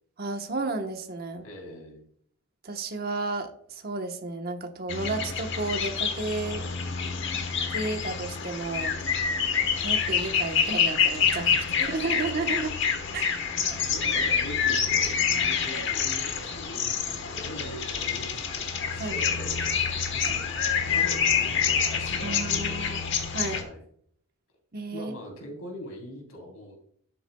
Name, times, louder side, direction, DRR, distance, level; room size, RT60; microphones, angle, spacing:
voice 1, 0.2-1.5 2.6-6.6 7.7-9.0 9.8-11.5 11.8-12.7 13.1-13.2 19.0-19.2 22.2-23.6 24.7-25.1, right 3 dB, 45° right, 5 dB, 1.0 m, -32 dB
voice 2, 1.4-2.0 6.4-6.8 11.3-12.4 13.8-23.8 24.9-26.8, equal, 85° left, 1 dB, 3.4 m, -43 dB
sound 1, 4.9-23.6, left 7 dB, 55° left, 1.2 m, -27 dB
11.5 x 8.4 x 2.2 m, 0.63 s
head